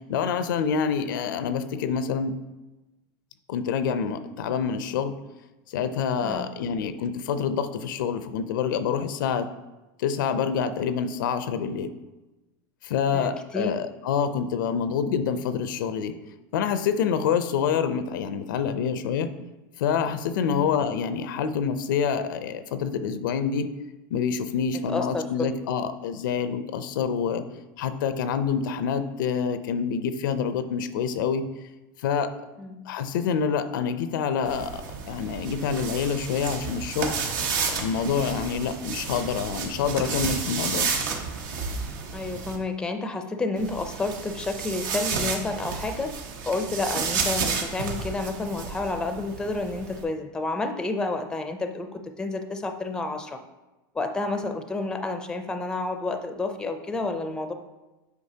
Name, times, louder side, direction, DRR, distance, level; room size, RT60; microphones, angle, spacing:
voice 1, 0.1-2.4 3.5-5.2 5.7-9.5 10.0-11.9 12.8-16.2 16.5-19.3 19.8-23.7 24.1-27.5 27.8-31.4 32.0-32.3 32.9-37.1 37.7-40.9, left 7 dB, 85° left, 11 dB, 0.5 m, -27 dB
voice 2, 6.2-6.5 13.1-13.7 20.4-20.6 24.9-25.2 32.6-32.8 42.1-46.1 46.5-53.4 53.9-57.5, left 3 dB, 5° left, 7 dB, 0.4 m, -30 dB
sound 1, 34.4-42.6 43.6-50.0, right 5 dB, 75° right, 1.1 m, -31 dB
8.1 x 5.1 x 2.8 m, 1.1 s
supercardioid pair, 140°, 11 cm